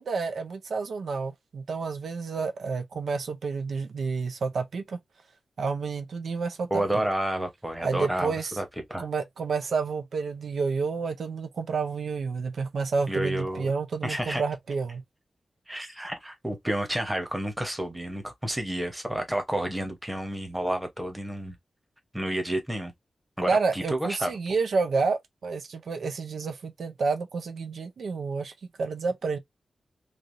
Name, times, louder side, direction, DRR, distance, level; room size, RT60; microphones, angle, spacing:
voice 1, 0.0-5.0 5.6-7.0 7.8-8.6 9.0-15.0 23.5-28.5 28.8-29.4, right 4 dB, 80° right, 0.5 m, -29 dB
voice 2, 6.7-8.6 8.9-9.1 13.1-13.7 14.0-14.4 15.7-21.6 22.1-22.9 23.4-24.3, right 1 dB, 10° right, 0.9 m, -30 dB
3.3 x 2.5 x 2.6 m
wide cardioid pair, 125°, 0 cm